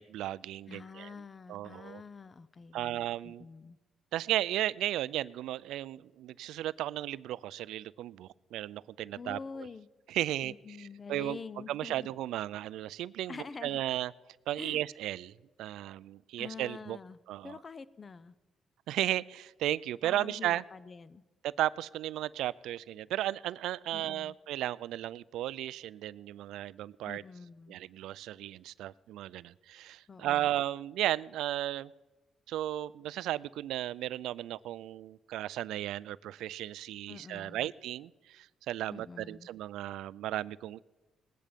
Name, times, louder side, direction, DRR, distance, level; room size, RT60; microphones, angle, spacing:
voice 1, 0.0-1.1 1.5-2.0 2.7-3.4 4.1-9.4 10.1-11.4 11.7-14.1 14.5-17.0 17.3-17.6 18.9-20.6 21.4-27.2 27.7-31.9 32.5-40.8, right 13 dB, 85° right, 19 dB, 0.3 m, -35 dB
voice 2, 0.7-3.8 9.2-9.9 10.4-12.1 13.3-13.8 14.6-14.8 16.4-17.2 17.4-18.3 20.0-21.2 23.9-24.3 27.0-27.8 30.1-30.5 37.1-37.7 38.9-39.5, left 4 dB, 35° left, 17 dB, 0.6 m, -46 dB
19.5 x 9.3 x 5.1 m, 1.2 s
cardioid pair, 90°, 0 cm